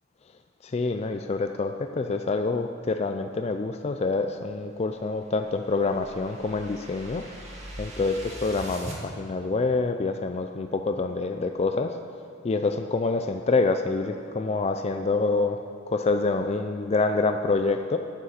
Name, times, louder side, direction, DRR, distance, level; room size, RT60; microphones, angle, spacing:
voice 1, 0.6-7.3 7.8-12.0 12.4-18.0, left 3 dB, 30° left, 6 dB, 0.3 m, -26 dB
sound 1, 5.0-9.0, right 1 dB, 30° right, 1.7 m, -42 dB
9.7 x 8.1 x 6.6 m, 2.5 s
head